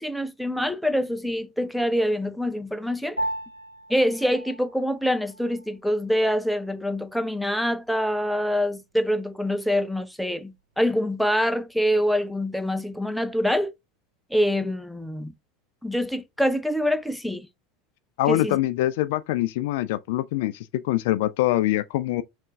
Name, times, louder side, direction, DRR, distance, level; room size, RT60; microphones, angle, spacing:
voice 1, 0.0-3.2 3.9-13.7 14.3-15.3 15.8-17.5 18.3-18.6, equal, ahead, 0.6 m, -25 dB
Piano, 3.2-12.8, right 1 dB, 90° left, 0.8 m, -40 dB
voice 2, 18.2-22.2, left 15 dB, 55° left, 0.3 m, -24 dB
5.5 x 2.6 x 3.5 m
figure-of-eight pair, 80°, 0 cm